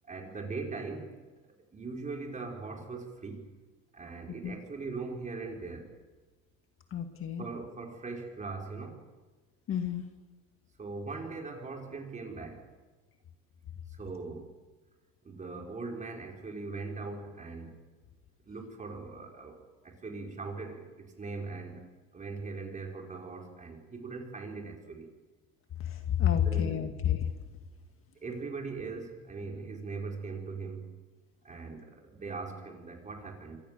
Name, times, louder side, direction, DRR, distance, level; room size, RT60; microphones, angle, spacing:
voice 1, 0.1-1.1 1.7-3.4 3.9-5.9 7.4-9.0 10.8-12.7 14.0-14.5 15.3-17.9 18.5-21.8 22.1-25.1 26.4-26.8 28.2-30.9 31.4-33.6, right 4 dB, 20° right, 1 dB, 5.2 m, -40 dB
voice 2, 6.9-7.5 9.7-10.0 25.9-27.3, left 10 dB, 40° left, 6 dB, 2.3 m, -29 dB
27.5 x 25.5 x 7.0 m, 1.3 s
supercardioid pair, 120°, 33 cm